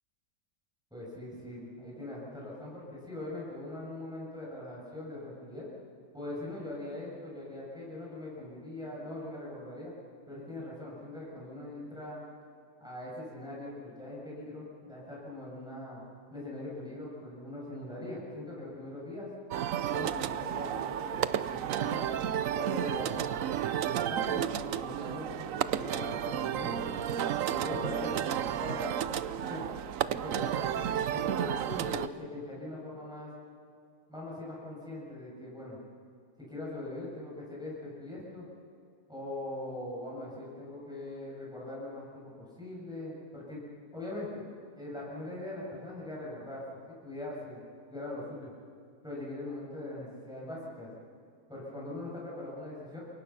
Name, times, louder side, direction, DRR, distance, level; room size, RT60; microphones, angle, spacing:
voice 1, 0.9-5.7 6.1-9.9 10.3-12.2 12.8-16.0 16.3-19.3 19.9-22.1 22.5-26.9 27.5-29.7 30.0-33.3 34.1-35.8 36.4-38.4 39.1-43.7 43.9-46.6 46.9-47.6 47.9-48.5 49.0-50.9 51.5-53.0, left 1 dB, ahead, -5 dB, 7.6 m, -41 dB
sound 1, 19.5-32.1, right 10 dB, 60° right, 0.9 m, -32 dB
28.0 x 23.5 x 5.9 m, 2.4 s
omnidirectional pair, 1.8 m